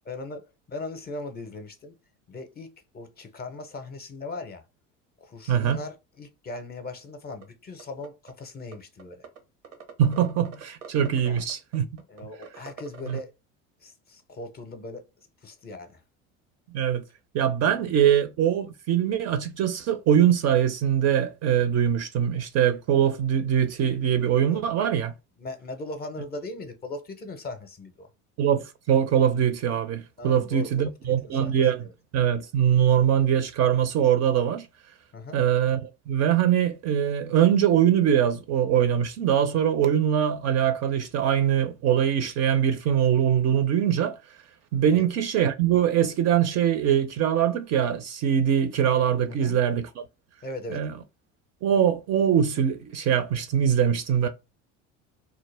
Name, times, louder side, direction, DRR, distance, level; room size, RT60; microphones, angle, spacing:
voice 1, 0.0-1.9 2.3-4.6 5.2-9.3 11.2-11.5 12.1-13.3 13.8-15.0 15.4-16.0 17.8-17.9 24.5-24.6 25.4-28.1 30.2-31.9 35.1-35.4 44.8-45.0 49.3-49.6 50.4-50.9, left 2 dB, 25° left, 0.5 m, -39 dB
voice 2, 5.5-5.8 10.0-11.9 13.1-13.2 16.7-17.0 17.3-25.1 28.4-31.9 32.1-34.7 35.3-44.2 44.7-50.0 50.7-50.9 51.6-54.3, right 9 dB, 45° right, 0.4 m, -22 dB
sound 1, 7.4-7.5 7.8-8.3 8.7-8.8 9.0-9.4 9.6-13.2, right 7 dB, 85° right, 0.8 m, -43 dB
2.2 x 2.0 x 3.1 m
hypercardioid pair, 75°, 38 cm